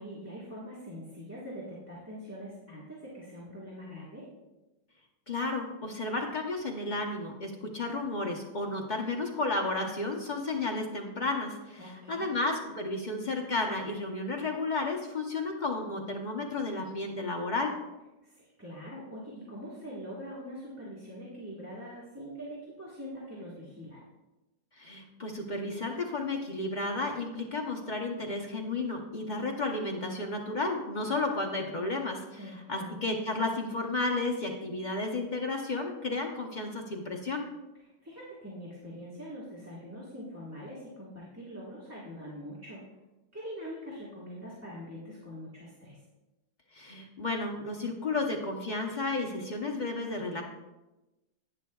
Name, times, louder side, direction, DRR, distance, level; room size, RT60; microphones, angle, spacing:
voice 1, 0.0-4.3 11.8-12.4 18.2-24.0 32.4-33.0 38.0-42.8 43.3-46.0, equal, 10° right, -7 dB, 1.3 m, -43 dB
voice 2, 5.3-17.7 24.8-37.5 46.7-50.4, left 2 dB, 45° left, 1 dB, 0.6 m, -32 dB
11.0 x 9.2 x 2.3 m, 1.0 s
omnidirectional pair, 2.0 m